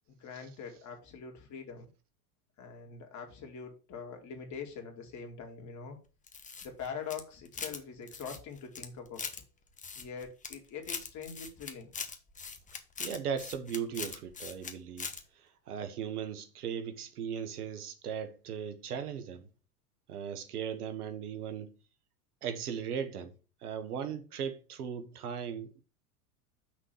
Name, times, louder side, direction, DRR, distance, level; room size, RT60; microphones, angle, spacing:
voice 1, 0.1-1.9 2.6-6.0 6.6-9.3 9.9-11.9, left 6 dB, 40° left, 2.5 m, -43 dB
sound 1, 6.3-7.8 8.1-9.4 9.8-10.6 10.8-14.7 15.0-15.2, left 5 dB, 15° left, 1.1 m, -41 dB
voice 2, 13.0-15.1 15.7-19.5 20.1-21.7 22.4-23.3 23.6-25.8, right 7 dB, 80° right, 1.3 m, -37 dB
6.3 x 3.8 x 6.0 m
hypercardioid pair, 90°, 45 cm